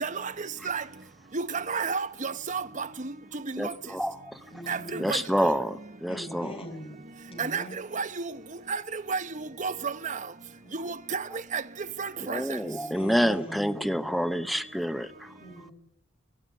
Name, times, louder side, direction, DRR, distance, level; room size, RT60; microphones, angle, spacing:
voice 1, 1.3-2.8 3.5-3.7 4.7-5.2 7.4-7.6 7.9-8.1 8.7-8.8 9.1-9.2 9.6-10.2 10.8-11.2 11.5-11.6 12.0-12.4, right 5 dB, 40° right, 1.0 m, -30 dB
voice 2, 3.6-4.4 5.0-6.5 12.2-15.3, equal, ahead, 0.8 m, -28 dB
voice 3, 4.5-5.2 6.1-7.0 7.3-7.8 10.6-10.8 12.6-14.2 15.4-15.7, equal, 30° left, 6.1 m, -42 dB
25.0 x 17.0 x 9.4 m
head